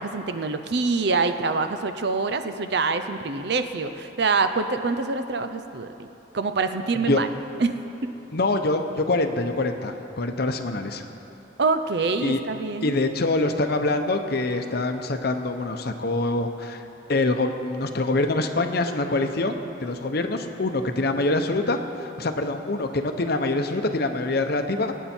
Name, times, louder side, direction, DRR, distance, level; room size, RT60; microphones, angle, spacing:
voice 1, 0.0-6.1 6.3-7.3 7.6-7.7 8.0-8.1 11.6-12.9, right 4 dB, 60° right, 9 dB, 0.6 m, -25 dB
voice 2, 8.3-11.0 12.2-12.4 12.8-16.8 17.1-19.5 19.8-25.0, left 2 dB, 55° left, 6 dB, 0.8 m, -25 dB
23.5 x 9.1 x 4.4 m, 3.0 s
head